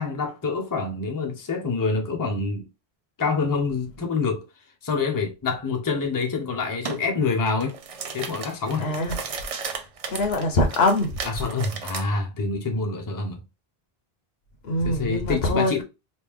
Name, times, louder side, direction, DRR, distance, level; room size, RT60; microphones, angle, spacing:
voice 1, 0.0-2.7 3.2-4.5 4.8-7.7 8.1-8.9 11.2-13.4 14.8-15.8, left 4 dB, 25° left, 0.6 m, -26 dB
sound 1, 6.8-7.0 7.5-12.0, right 5 dB, 45° right, 0.5 m, -35 dB
voice 2, 8.8-9.2 10.1-11.2 14.6-15.7, left 1 dB, 80° left, 1.1 m, -23 dB
3.2 x 2.5 x 3.4 m
omnidirectional pair, 1.0 m